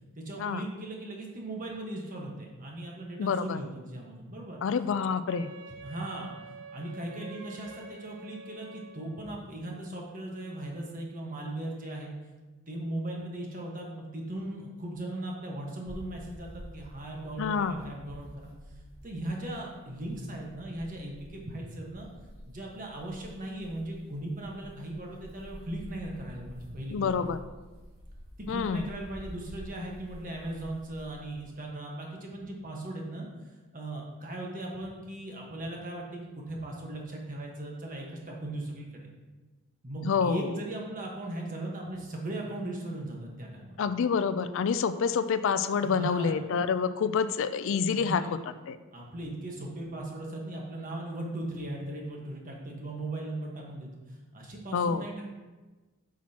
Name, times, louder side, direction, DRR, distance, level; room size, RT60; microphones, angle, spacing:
voice 1, 0.2-4.6 5.8-6.3 6.7-12.1 12.7-18.5 19.0-22.1 22.5-27.1 28.4-33.3 33.7-39.1 39.8-43.8 45.8-46.4 47.9-48.3 48.9-55.2, right 1 dB, 35° right, -1 dB, 1.3 m, -38 dB
voice 2, 3.2-3.6 4.6-5.5 17.4-17.8 26.9-27.4 28.5-28.9 40.0-40.5 43.8-48.3 48.7-48.8 54.7-55.1, left 6 dB, 60° left, 13 dB, 0.3 m, -27 dB
Wind instrument woodwind instrument, 5.3-9.4, right 2 dB, 85° right, 0.7 m, -47 dB
sound 1, 15.8-31.4, equal, 65° right, 2.1 m, -49 dB
8.3 x 6.1 x 2.9 m, 1.2 s
head